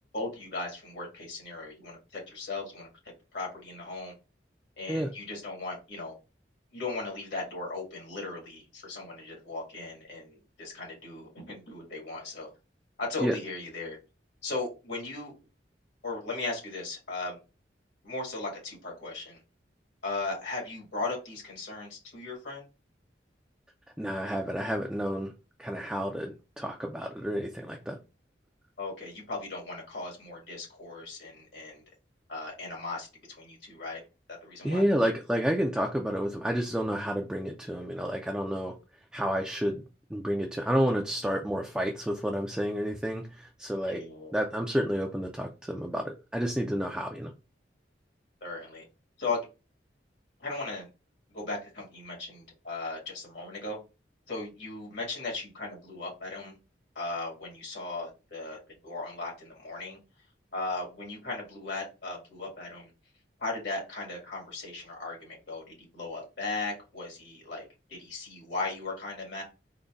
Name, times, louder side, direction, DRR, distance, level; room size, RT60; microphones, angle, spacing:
voice 1, 0.1-2.9 3.3-4.1 4.8-6.2 6.7-12.5 13.0-14.0 14.4-15.3 16.0-17.4 18.0-19.4 20.0-22.6 28.8-31.8 32.3-34.0 34.4-34.8 43.9-44.3 48.4-48.8 49.2-49.5 50.4-50.9 51.3-53.8 54.3-56.6 56.9-60.0 60.5-62.9 63.4-69.4, left 3 dB, 75° left, -1 dB, 1.7 m, -37 dB
voice 2, 24.0-25.3 25.6-28.0 34.6-38.7 39.1-39.8 40.1-44.0 44.3-47.3, equal, 5° right, 2 dB, 0.3 m, -30 dB
3.9 x 2.1 x 3.5 m, 0.29 s
head